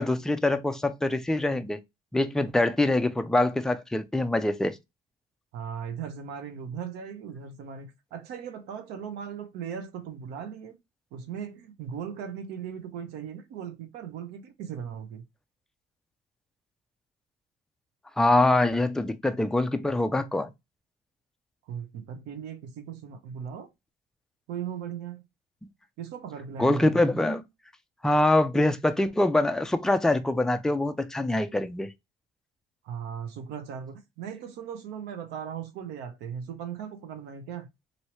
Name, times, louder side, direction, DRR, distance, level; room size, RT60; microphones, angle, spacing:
voice 1, 0.0-1.8 2.1-4.8 18.2-20.5 26.6-27.4 28.0-31.9, left 2 dB, 5° left, 0.4 m, -24 dB
voice 2, 5.5-10.8 11.1-15.2 21.7-23.7 24.5-25.2 26.0-27.0 32.8-37.7, right 8 dB, 90° right, 0.8 m, -38 dB
3.1 x 2.7 x 2.8 m
cardioid pair, 110°, 17 cm